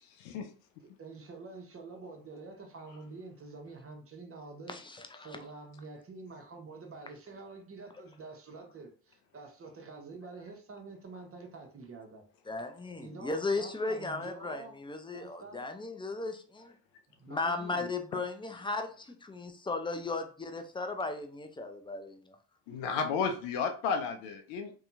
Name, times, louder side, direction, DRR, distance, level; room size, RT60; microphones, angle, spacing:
voice 1, 0.8-4.8 5.2-12.2 13.0-14.7 15.1-15.6 17.1-17.9, right 3 dB, 30° right, 0.8 m, -47 dB
voice 2, 4.7-5.4 12.5-16.7 17.3-22.4, left 3 dB, 10° left, 0.4 m, -36 dB
voice 3, 22.7-24.8, left 5 dB, 80° left, 0.6 m, -32 dB
2.7 x 2.3 x 2.5 m
hypercardioid pair, 45°, 46 cm